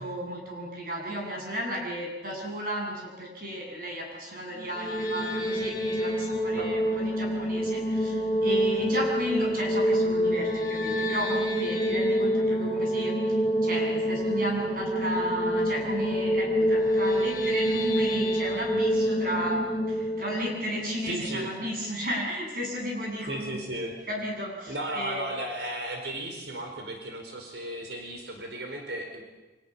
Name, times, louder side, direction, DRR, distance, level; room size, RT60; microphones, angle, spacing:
voice 1, 0.0-13.1 13.6-23.6 24.1-25.2, equal, 50° right, 0 dB, 7.7 m, -34 dB
sound 1, 4.6-21.7, equal, 20° left, 7.7 m, -27 dB
voice 2, 6.4-6.7 21.1-21.5 23.3-24.0 24.7-29.2, right 1 dB, 75° right, 3 dB, 4.6 m, -35 dB
29.0 x 26.0 x 7.3 m, 1.1 s
head